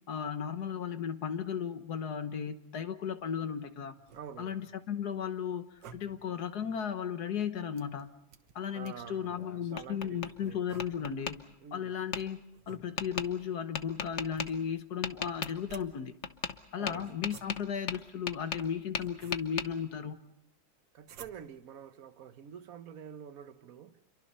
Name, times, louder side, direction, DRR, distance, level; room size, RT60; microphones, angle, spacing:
voice 1, 0.1-3.9 4.4-8.1 8.5-11.4 11.7-12.4 12.7-16.1 16.7-20.2, left 8 dB, 65° left, 1.6 m, -35 dB
sound 1, 4.0-4.7 5.6-6.4 7.7-9.2 10.4-11.3 12.5-13.3 14.3-14.8 15.3-16.1 17.0-17.8 18.6-19.7 21.0-21.7, right 7 dB, 85° right, 1.8 m, -54 dB
voice 2, 4.1-4.6 8.7-10.7 11.6-12.0 16.8-17.2 20.9-24.0, right 8 dB, 55° right, 1.4 m, -47 dB
Tap, 9.3-10.3 10.8-11.4 12.1-12.2 13.0-13.3 13.7-14.5 15.0-15.5 16.2-16.6 16.9-18.7 18.9-19.7, left 6 dB, 45° left, 1.1 m, -36 dB
27.5 x 23.5 x 5.5 m
omnidirectional pair, 1.9 m